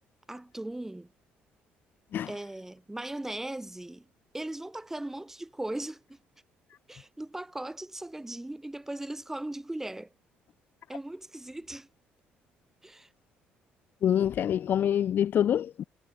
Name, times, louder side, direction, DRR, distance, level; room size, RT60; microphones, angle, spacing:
voice 1, 0.3-1.1 2.3-4.1 4.3-6.2 6.9-10.1 10.9-11.9 12.8-13.1, right 1 dB, 10° right, 3.9 m, -38 dB
voice 2, 14.0-15.8, left 10 dB, 55° left, 0.8 m, -26 dB
supercardioid pair, 85°, 4 cm